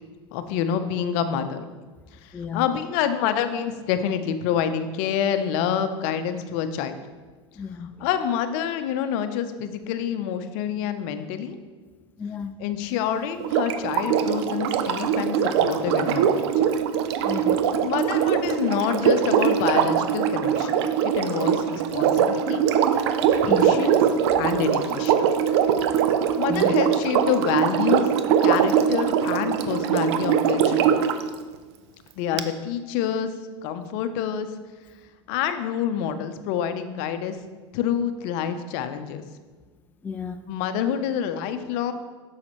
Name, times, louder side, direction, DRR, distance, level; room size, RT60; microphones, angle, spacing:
voice 1, 0.3-1.7 2.2-6.9 8.0-11.6 12.6-16.4 17.8-20.7 21.0-22.6 23.4-24.0 24.4-25.3 26.4-28.0 28.4-31.0 32.2-33.3 33.6-34.5 35.3-37.4 37.7-39.2 40.5-41.9, left 8 dB, 55° left, 0.7 m, -27 dB
voice 2, 2.3-2.6 7.6-7.9 12.2-12.5 17.2-17.6 23.4-23.8 26.5-26.7 40.0-40.4, left 6 dB, 10° left, 0.3 m, -32 dB
Sink (filling or washing), 13.4-31.2 32.4-32.5, right 8 dB, 65° right, 0.6 m, -22 dB
8.4 x 6.5 x 3.0 m
hypercardioid pair, 95°, 15 cm